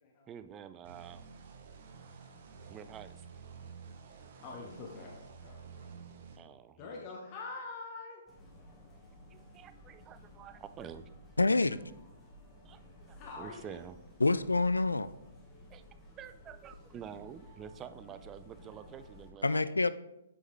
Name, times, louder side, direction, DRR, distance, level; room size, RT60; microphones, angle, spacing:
voice 1, 0.3-1.2 2.7-3.3 6.4-7.0 9.3-11.1 12.6-12.8 13.1-14.0 15.7-15.9 16.2-19.7, right 8 dB, 20° right, 11 dB, 0.4 m, -48 dB
sound 1, 0.8-6.4, right 5 dB, 45° right, 1.0 m, -51 dB
voice 2, 4.4-5.9 6.8-8.2 13.2-13.7, left 3 dB, 35° left, 0 dB, 1.1 m, -45 dB
sound 2, 8.3-19.3, left 1 dB, 10° left, 1.3 m, -55 dB
voice 3, 11.4-11.8 14.2-15.1 19.4-19.9, left 3 dB, 80° left, 15 dB, 0.3 m, -27 dB
8.0 x 5.7 x 3.2 m, 0.89 s
figure-of-eight pair, 125°, 0 cm